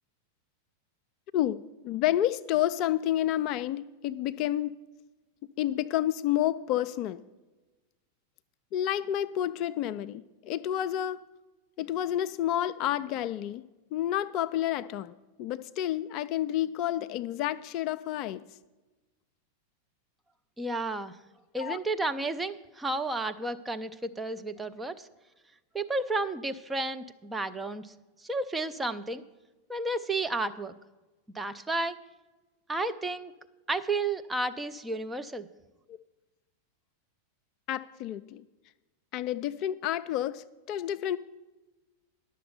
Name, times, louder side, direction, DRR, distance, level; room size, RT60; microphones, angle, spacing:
voice 1, 1.3-4.7 5.6-7.2 8.7-11.2 11.8-15.1 15.4-18.4 21.6-21.8 35.9-36.0 37.7-38.4 39.1-41.2, left 12 dB, 40° left, 12 dB, 0.3 m, -30 dB
voice 2, 20.6-21.2 21.5-25.1 25.7-27.9 28.2-29.2 29.7-30.7 31.3-32.0 32.7-33.3 33.7-35.5, right 2 dB, 10° right, 8 dB, 0.6 m, -32 dB
11.0 x 6.7 x 6.7 m, 1.2 s
figure-of-eight pair, 90°, 0 cm